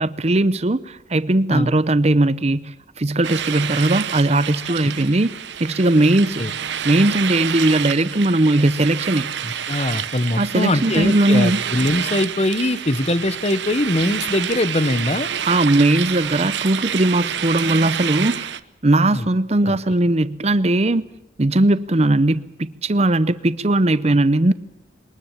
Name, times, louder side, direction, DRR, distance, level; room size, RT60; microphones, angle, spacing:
voice 1, 0.0-5.3 5.6-6.4 6.8-9.3 10.4-11.6 15.5-18.5 18.8-21.1 21.4-24.5, right 2 dB, 35° right, 0.8 m, -18 dB
sound 1, 3.2-18.6, right 9 dB, 75° right, 0.9 m, -28 dB
voice 2, 9.4-15.3 19.1-19.2 19.6-19.8, left 1 dB, 35° left, 1.2 m, -22 dB
22.0 x 20.0 x 7.4 m
head